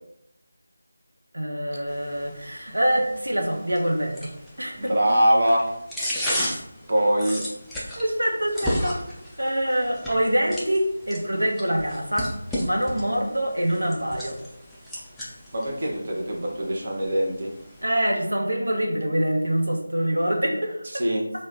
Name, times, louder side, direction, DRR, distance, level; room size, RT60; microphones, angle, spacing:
voice 1, 1.3-4.3 4.6-4.9 7.9-12.3 12.6-14.4 17.8-20.8, right 1 dB, 70° right, 0 dB, 0.8 m, -25 dB
sound 1, 1.9-17.8, equal, ahead, 0.3 m, -35 dB
voice 2, 4.8-5.7 6.9-7.4 15.5-17.5 20.9-21.2, equal, 40° right, 0 dB, 0.7 m, -22 dB
3.1 x 2.2 x 3.7 m, 0.77 s
figure-of-eight pair, 165°, 0 cm